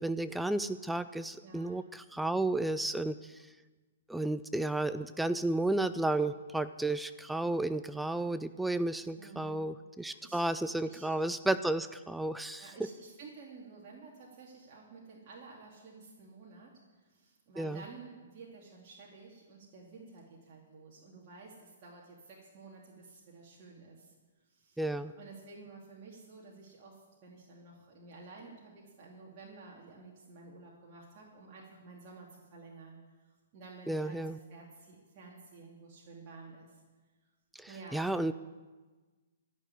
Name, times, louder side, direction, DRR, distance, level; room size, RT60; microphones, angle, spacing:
voice 1, 0.0-3.4 4.1-12.7 17.6-17.8 24.8-25.1 33.9-34.4 37.5-38.3, right 2 dB, 5° right, 13 dB, 0.4 m, -32 dB
voice 2, 1.4-1.8 9.2-9.7 10.0-11.1 12.6-24.1 24.5-24.9 25.2-34.2 34.5-36.8 37.7-38.3, right 4 dB, 40° right, -3 dB, 2.6 m, -52 dB
13.5 x 6.6 x 9.9 m, 1.3 s
hypercardioid pair, 135°, 0 cm